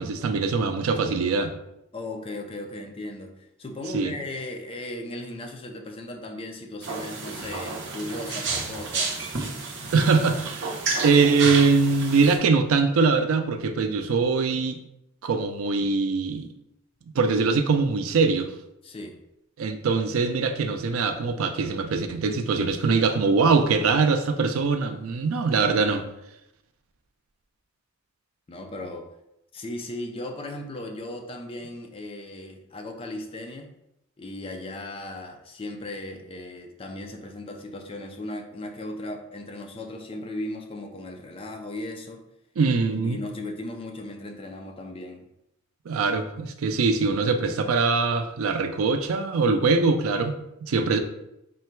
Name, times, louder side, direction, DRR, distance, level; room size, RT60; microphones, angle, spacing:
voice 1, 0.0-1.5 3.9-4.1 9.9-14.8 15.2-16.5 17.2-18.5 19.6-26.0 42.6-43.2 45.9-51.0, right 4 dB, 85° right, 7 dB, 0.4 m, -22 dB
voice 2, 1.9-9.2 18.8-19.2 28.5-29.1 29.5-33.7 34.2-42.2 42.9-45.3, left 1 dB, 25° left, 3 dB, 0.4 m, -37 dB
sound 1, 6.8-12.4, right 4 dB, 55° right, 0.8 m, -31 dB
3.7 x 2.2 x 4.4 m, 0.84 s
head